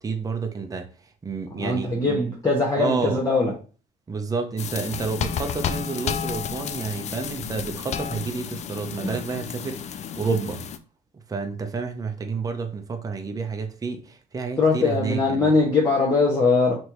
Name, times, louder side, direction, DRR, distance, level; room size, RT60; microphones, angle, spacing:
voice 1, 0.0-2.2 2.8-3.2 4.1-10.7 11.1-15.5, right 4 dB, 20° right, 0.6 m, -30 dB
voice 2, 1.6-3.5 9.0-9.1 14.6-16.8, left 3 dB, 20° left, 1.3 m, -21 dB
sound 1, 4.6-10.8, left 8 dB, 40° left, 0.4 m, -31 dB
4.3 x 3.2 x 2.9 m
cardioid pair, 110°, 17 cm